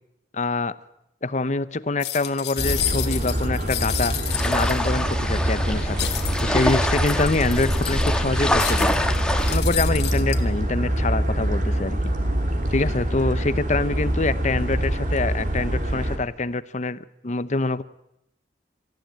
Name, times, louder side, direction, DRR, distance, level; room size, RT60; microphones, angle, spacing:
voice 1, 0.3-0.8 1.2-4.1 4.4-6.1 6.4-9.0 9.5-12.0 12.7-17.8, left 3 dB, 40° left, 15 dB, 0.8 m, -25 dB
sound 1, 2.0-5.1 6.0-8.2 8.6-10.4, left 12 dB, 70° left, 2.3 m, -31 dB
sound 2, 2.6-16.2, equal, 45° right, 3.5 m, -25 dB
sound 3, 4.3-9.6, left 1 dB, 5° left, 1.5 m, -26 dB
27.0 x 15.0 x 9.2 m, 0.83 s
head